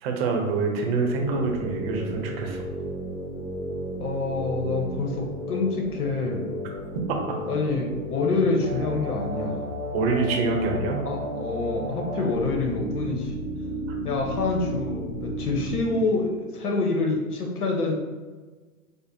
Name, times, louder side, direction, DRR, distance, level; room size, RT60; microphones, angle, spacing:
voice 1, 0.0-2.6 7.1-7.4 9.9-11.0, right 3 dB, 45° right, 2 dB, 0.7 m, -25 dB
sound 1, 1.2-16.0, equal, 5° right, 0.6 m, -33 dB
voice 2, 4.0-6.5 7.5-9.6 11.0-13.3 14.0-17.9, left 3 dB, 85° left, 1 dB, 1.0 m, -26 dB
5.1 x 2.1 x 2.6 m, 1.3 s
hypercardioid pair, 120°, 44 cm